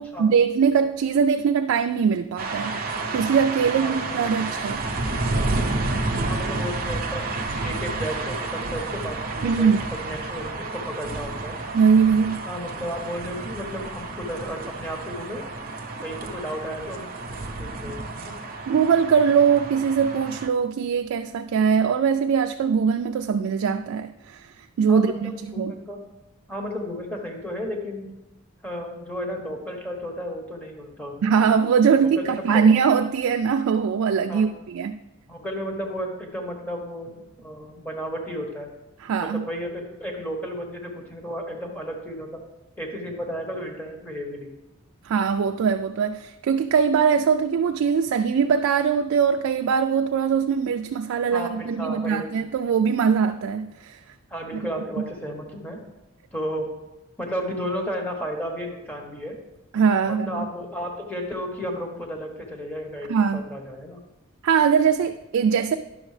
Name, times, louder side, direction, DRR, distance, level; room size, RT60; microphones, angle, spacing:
voice 1, 0.0-4.8 9.4-9.8 11.7-12.5 18.7-24.5 24.8-25.7 31.2-35.0 39.0-39.4 45.0-54.0 59.7-60.4 63.1-63.4 64.4-65.7, right 6 dB, 85° right, 6 dB, 0.3 m, -21 dB
sound 1, 2.4-20.5, right 3 dB, 45° right, 0.6 m, -30 dB
voice 2, 3.8-4.2 6.3-11.6 12.5-15.4 16.0-18.4 24.9-26.0 26.5-28.1 28.6-31.4 32.0-32.7 34.3-34.5 35.3-38.7 39.2-42.4 42.8-44.5 51.3-52.3 54.3-55.8 56.3-56.7 57.2-59.4 60.0-64.0, equal, 5° left, 0 dB, 1.1 m, -33 dB
10.5 x 6.3 x 3.2 m, 1.0 s
head